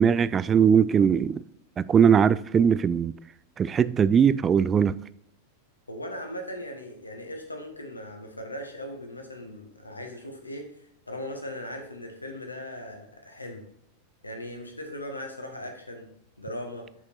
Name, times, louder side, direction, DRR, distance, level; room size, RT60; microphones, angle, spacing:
voice 1, 0.0-1.4 1.8-3.1 3.6-5.0, right 7 dB, 20° right, 0.3 m, -20 dB
voice 2, 5.9-10.7 11.1-13.6 14.2-16.1 16.4-16.9, left 1 dB, 80° left, 1.4 m, -38 dB
6.4 x 6.2 x 4.2 m
figure-of-eight pair, 90°, 0 cm